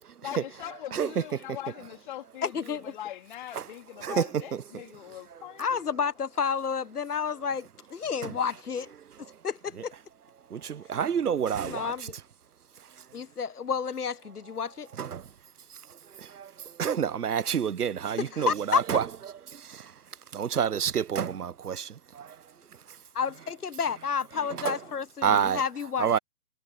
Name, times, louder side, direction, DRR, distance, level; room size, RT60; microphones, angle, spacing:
voice 1, 0.2-6.3 24.6-25.0, left 13 dB, 35° left, 3.5 m, -42 dB
voice 2, 2.4-2.8 5.6-8.9 9.4-9.9 11.6-12.1 13.1-14.9 18.3-18.8 23.1-26.2, left 6 dB, 90° left, 1.2 m, -30 dB
voice 3, 10.5-12.1 13.0-13.1 15.0-15.3 15.7-19.9 20.3-22.4 22.9-23.0 24.5-24.8 25.2-25.6 26.0-26.2, right 8 dB, 85° right, 0.9 m, -29 dB
hypercardioid pair, 155°, 44 cm